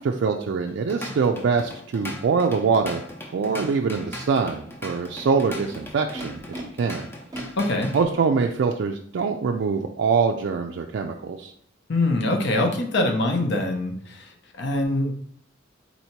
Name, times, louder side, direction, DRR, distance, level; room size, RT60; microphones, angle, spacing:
voice 1, 0.0-3.0 3.3-6.4 6.8-7.1 7.9-11.5, right 5 dB, 65° right, 3 dB, 0.3 m, -24 dB
Drum kit / Drum, 0.7-8.0, left 1 dB, 10° left, 0.6 m, -38 dB
Animal, 2.7-2.8 3.6-4.1 5.0-6.6 7.3-8.5, right 1 dB, 20° right, 0.8 m, -41 dB
voice 2, 7.6-7.9 11.9-15.1, left 2 dB, 60° left, 3 dB, 0.8 m, -24 dB
4.2 x 2.8 x 4.4 m, 0.64 s
head